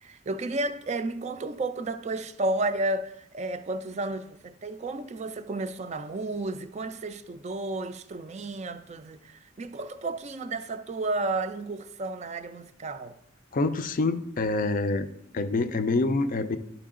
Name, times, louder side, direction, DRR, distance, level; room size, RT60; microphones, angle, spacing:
voice 1, 0.0-13.2, right 2 dB, 35° right, 0.4 m, -32 dB
voice 2, 13.5-15.1 15.3-16.6, left 3 dB, 45° left, 0.4 m, -26 dB
11.0 x 4.6 x 3.7 m
head